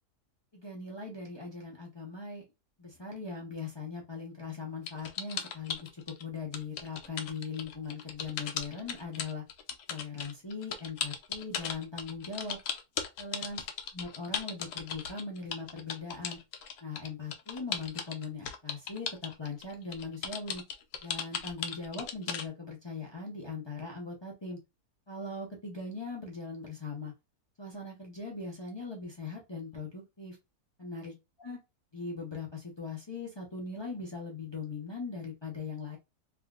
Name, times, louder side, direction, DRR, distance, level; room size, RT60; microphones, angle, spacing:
voice 1, 0.5-2.4 2.8-9.4 9.9-12.6 13.2-13.6 13.9-16.4 16.8-20.6 21.0-24.6 25.1-27.1 27.6-30.4 30.8-31.1 31.4-31.6 31.9-36.0, left 4 dB, 35° left, -2 dB, 0.4 m, -40 dB
sound 1, 4.9-6.2 6.5-22.5, left 7 dB, 65° left, 0.8 m, -37 dB
3.4 x 2.7 x 2.3 m, 0.24 s
omnidirectional pair, 1.7 m